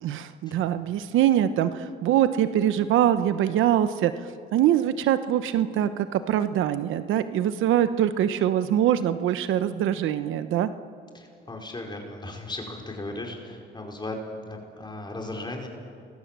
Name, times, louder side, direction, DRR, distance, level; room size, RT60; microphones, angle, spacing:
voice 1, 0.0-10.7, right 11 dB, 85° right, 12 dB, 1.0 m, -23 dB
voice 2, 11.1-15.7, left 2 dB, 20° left, 1 dB, 4.8 m, -36 dB
29.5 x 22.5 x 7.5 m, 2.3 s
cardioid pair, 90°, 20 cm